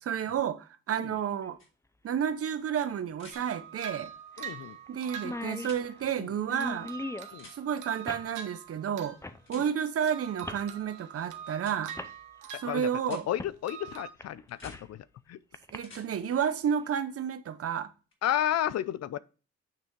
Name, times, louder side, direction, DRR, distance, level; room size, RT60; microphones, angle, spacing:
voice 1, 0.0-1.6 2.0-4.1 4.9-6.9 7.5-9.2 9.5-11.9 12.5-13.3 15.7-17.9, right 8 dB, 50° right, 0.8 m, -31 dB
sound 1, 1.4-1.5 3.3-3.4 3.7-3.8 4.4-4.6 4.9-5.0 5.1-7.3 8.1-8.3 9.2-9.4 10.4-10.7 11.5-11.6 11.9-12.1 13.4-13.6 14.0-14.9 15.5-15.8, left 2 dB, 10° left, 0.5 m, -40 dB
sound 2, 1.6-1.7 3.1-3.4 5.6-5.8 7.4-7.6 9.5-9.7 11.6-11.8 13.0-13.2 14.5-14.8 15.7-16.1 18.1-18.2, left 3 dB, 40° left, 3.0 m, -51 dB
sound 3, 3.3-6.1 6.6-9.3 9.5-9.8 10.1-13.3 13.6-14.1, right 8 dB, 75° right, 1.2 m, -45 dB
voice 2, 4.4-4.8 7.3-7.5 12.7-15.0 15.3-15.4 18.2-19.2, left 11 dB, 60° left, 0.5 m, -32 dB
8.7 x 3.4 x 4.5 m
cardioid pair, 90°, 30 cm